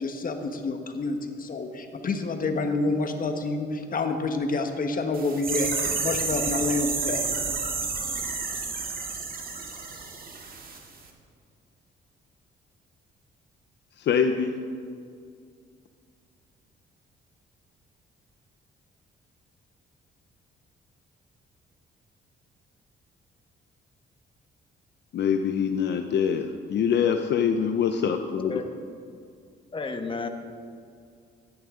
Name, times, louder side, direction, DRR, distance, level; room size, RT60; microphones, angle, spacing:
voice 1, 0.0-5.7 6.0-7.3, left 3 dB, 45° left, 6 dB, 1.4 m, -28 dB
sound 1, 5.1-10.8 11.0-11.1, right 4 dB, 45° right, 1.9 m, -30 dB
voice 2, 14.0-14.6 25.1-28.6, left 7 dB, 60° left, 6 dB, 0.7 m, -24 dB
voice 3, 29.7-30.3, left 4 dB, 25° left, 5 dB, 1.2 m, -32 dB
16.0 x 10.5 x 3.9 m, 2.3 s
cardioid pair, 90°, 20 cm